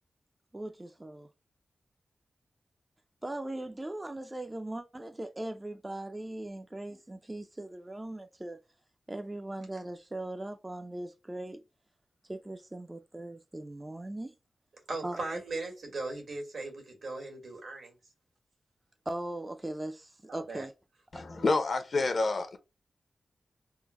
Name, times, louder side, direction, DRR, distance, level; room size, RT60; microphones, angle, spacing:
voice 1, 0.5-1.3 3.2-8.6 9.1-11.6 12.3-14.3 15.0-15.2 19.1-20.7 21.3-21.5, right 1 dB, 20° right, 0.4 m, -39 dB
voice 2, 14.9-17.9 20.3-20.6, right 2 dB, 80° right, 1.6 m, -38 dB
voice 3, 21.1-22.6, left 3 dB, 55° left, 0.7 m, -28 dB
3.6 x 2.0 x 3.0 m
wide cardioid pair, 80°, 0 cm